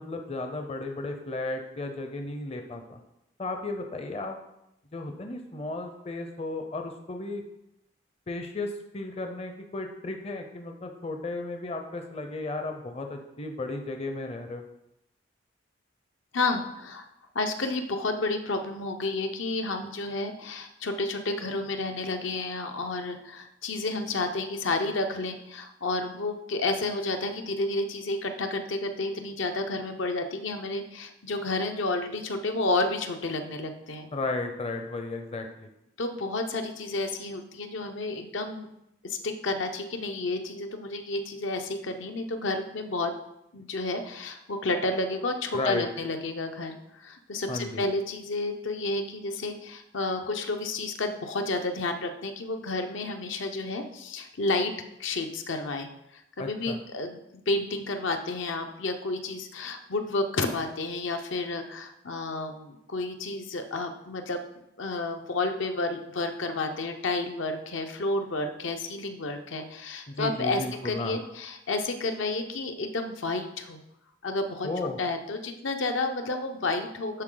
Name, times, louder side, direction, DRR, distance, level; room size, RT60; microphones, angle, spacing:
voice 1, 0.0-3.0 3.4-4.4 4.9-7.4 8.3-14.6 34.1-35.7 45.5-45.8 47.5-47.8 56.4-56.8 70.1-71.2 74.6-75.0, left 2 dB, 30° left, 5 dB, 0.5 m, -34 dB
voice 2, 16.3-17.0 17.3-34.1 36.0-38.7 39.0-43.1 43.5-54.7 55.0-55.9 56.4-64.4 64.8-73.8 74.2-74.7 75.0-77.2, left 2 dB, 75° left, 6 dB, 0.8 m, -31 dB
11.0 x 4.1 x 3.8 m, 0.84 s
head